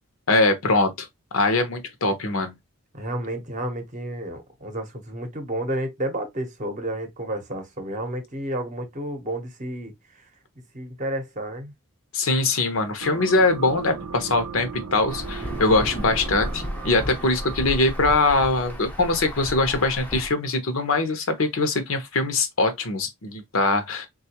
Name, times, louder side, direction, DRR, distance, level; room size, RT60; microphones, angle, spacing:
voice 1, 0.3-1.1 1.3-2.5 12.1-24.1, left 2 dB, 65° left, 0.7 m, -22 dB
voice 2, 2.9-10.3 10.7-11.7, right 1 dB, 35° right, 0.8 m, -31 dB
sound 1, 13.0-18.6, right 5 dB, 80° right, 0.6 m, -38 dB
Insect / Thunder / Rain, 15.1-20.3, equal, 5° left, 0.5 m, -33 dB
3.7 x 2.3 x 2.8 m
head